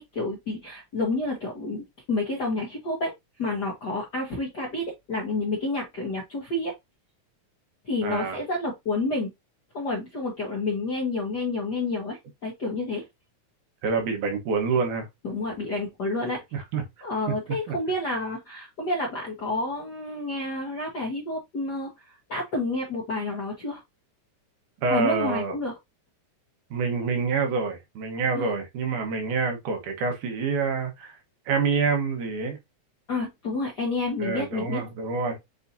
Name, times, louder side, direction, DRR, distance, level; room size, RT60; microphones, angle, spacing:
voice 1, 0.0-3.1 3.4-6.7 7.8-9.3 9.7-13.1 15.2-16.4 17.0-23.8 24.9-25.7 28.3-28.5 33.1-34.8, left 2 dB, 65° left, 1.0 m, -29 dB
voice 2, 8.0-8.4 13.8-15.1 16.5-16.8 17.7-17.8 24.8-25.6 26.7-31.2 31.5-32.6 34.2-35.4, right 4 dB, 85° right, 2.7 m, -27 dB
7.1 x 2.7 x 2.6 m
omnidirectional pair, 3.4 m